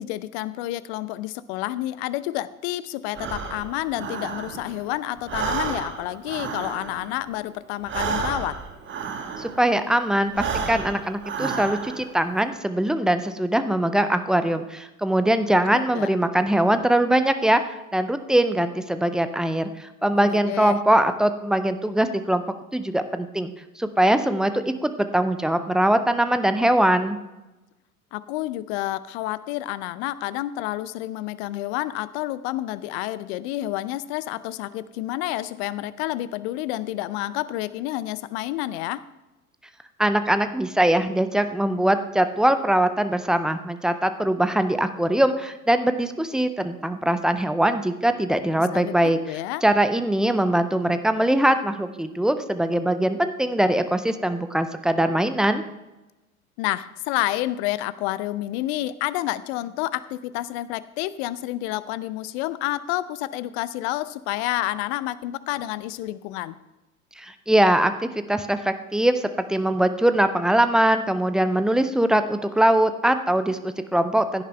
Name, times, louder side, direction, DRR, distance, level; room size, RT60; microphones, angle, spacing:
voice 1, 0.0-8.6 15.5-16.1 20.1-20.8 28.1-39.0 48.7-49.0 49.2-49.6 56.6-66.6, left 15 dB, 45° left, 16 dB, 0.7 m, -29 dB
Breathing, 3.1-4.9 5.2-9.8 10.3-12.2, right 5 dB, 25° right, 1.5 m, -31 dB
voice 2, 9.4-17.6 17.9-22.4 22.7-27.2 40.0-55.6 67.2-67.9 68.3-74.4, right 1 dB, ahead, 10 dB, 0.3 m, -22 dB
16.5 x 10.0 x 3.3 m, 1.0 s
figure-of-eight pair, 85°, 44 cm